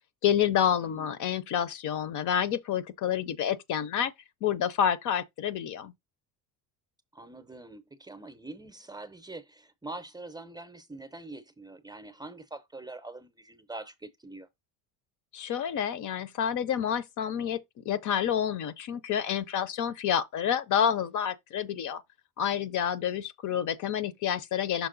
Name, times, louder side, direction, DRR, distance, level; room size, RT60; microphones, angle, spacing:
voice 1, 0.2-4.1 4.4-5.9 15.3-17.6 17.9-22.0 22.4-24.9, left 9 dB, 50° left, 0.7 m, -28 dB
voice 2, 0.8-1.3 7.1-14.5, right 2 dB, 10° right, 0.7 m, -44 dB
6.0 x 4.2 x 3.8 m
cardioid pair, 125°, 39 cm